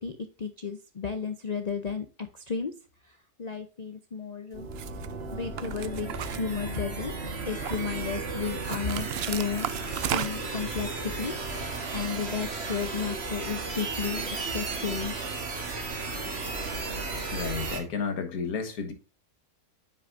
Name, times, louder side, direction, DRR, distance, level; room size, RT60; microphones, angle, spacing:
voice 1, 0.0-2.7 3.4-4.7 5.3-7.1 7.5-9.7 10.1-11.3 11.6-14.3 14.5-15.1, left 6 dB, 40° left, 0.6 m, -33 dB
sound 1, 4.5-17.8, right 3 dB, 45° right, 1.7 m, -34 dB
sound 2, 4.7-5.1 5.6-7.0 7.4-8.0 8.6-10.6, right 11 dB, 75° right, 0.5 m, -34 dB
voice 2, 17.3-18.9, left 5 dB, 70° left, 1.9 m, -32 dB
8.6 x 6.3 x 2.6 m
omnidirectional pair, 1.6 m